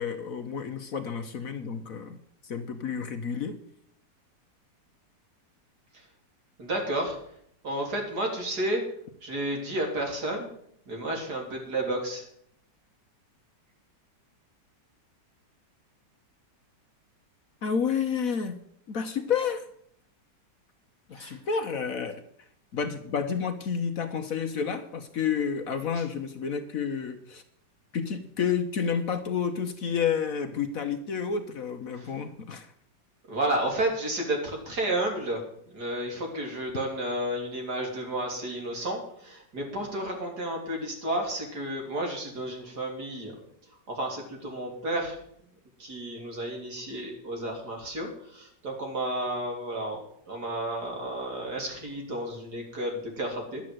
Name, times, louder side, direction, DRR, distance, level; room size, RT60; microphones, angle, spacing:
voice 1, 0.0-2.2 2.4-3.6 17.6-18.6 18.9-19.6 21.1-22.2 22.7-27.4 27.9-32.7, left 6 dB, 55° left, 8 dB, 1.2 m, -30 dB
voice 2, 6.6-7.2 7.6-8.8 9.2-10.5 10.9-12.2 21.1-21.4 25.9-26.0 32.0-32.1 33.3-35.4 35.7-43.3 43.9-45.2 45.8-50.0 50.3-53.6, right 1 dB, 60° right, 1 dB, 3.7 m, -31 dB
11.5 x 8.8 x 7.8 m, 0.67 s
omnidirectional pair, 1.9 m